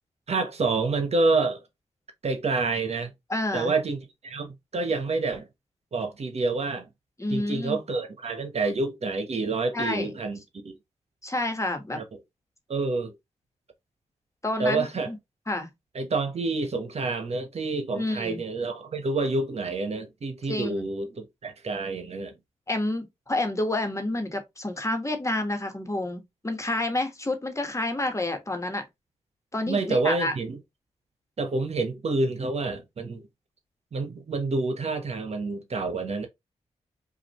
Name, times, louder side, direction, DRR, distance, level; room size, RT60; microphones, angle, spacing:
voice 1, 0.3-1.6 2.2-3.1 3.5-5.5 5.9-6.9 7.3-10.8 11.9-12.2 12.7-13.1 14.6-15.1 15.9-22.3 29.7-30.6 31.4-33.3 33.9-36.3, right 3 dB, 60° right, 1.1 m, -28 dB
voice 2, 3.3-3.7 7.2-7.8 9.7-10.1 11.2-12.0 14.4-15.2 15.5-15.7 18.0-18.4 20.5-20.9 22.7-28.8 29.5-30.3, left 2 dB, 25° left, 1.4 m, -29 dB
4.9 x 2.6 x 3.1 m
cardioid pair, 55°, 12 cm